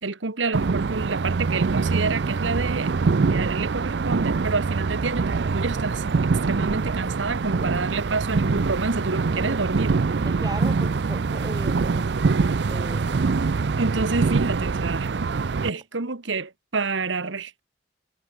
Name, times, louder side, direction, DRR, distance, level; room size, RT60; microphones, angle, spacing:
voice 1, 0.0-2.9 3.3-9.9 13.8-15.3 15.6-17.6, right 3 dB, 80° right, 1.4 m, -28 dB
sound 1, 0.5-15.7, right 4 dB, 60° right, 0.5 m, -24 dB
voice 2, 7.5-7.9 9.3-9.6 10.2-12.1 12.7-13.3, right 1 dB, 20° right, 2.7 m, -37 dB
head